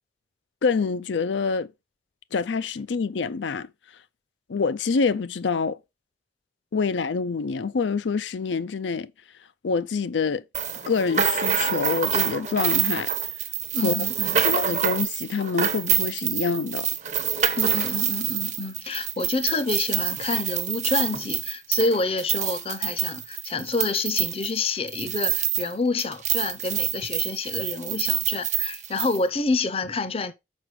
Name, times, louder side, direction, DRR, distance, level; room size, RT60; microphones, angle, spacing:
voice 1, 0.6-1.7 2.3-3.7 4.5-5.8 6.7-9.1 9.6-10.4 10.9-13.1 13.8-14.0 14.4-16.9, left 5 dB, 85° left, 0.5 m, -26 dB
sound 1, 10.5-25.7 26.0-29.2, right 9 dB, 40° right, 0.9 m, -26 dB
voice 2, 13.7-14.4 17.6-30.3, left 3 dB, 30° left, 0.6 m, -28 dB
6.3 x 4.9 x 4.7 m
head